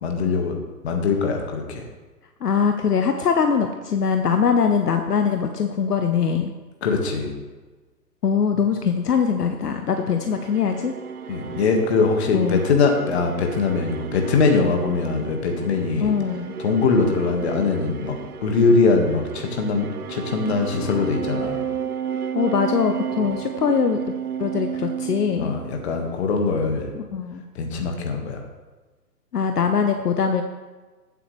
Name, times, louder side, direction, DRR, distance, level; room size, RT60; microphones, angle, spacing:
voice 1, 0.0-0.6 0.8-1.8 6.8-7.3 11.3-16.1 16.6-21.6 25.4-26.9 27.5-28.4, left 4 dB, 40° left, 3 dB, 1.7 m, -22 dB
voice 2, 2.4-6.5 8.2-10.9 12.3-12.6 16.0-16.6 22.3-24.1 24.4-25.5 26.9-27.4 29.3-30.4, left 6 dB, 65° left, 6 dB, 0.9 m, -22 dB
sound 1, 9.8-26.1, right 7 dB, 60° right, 0.8 m, -32 dB
15.0 x 7.8 x 3.2 m, 1.3 s
figure-of-eight pair, 135°, 50 cm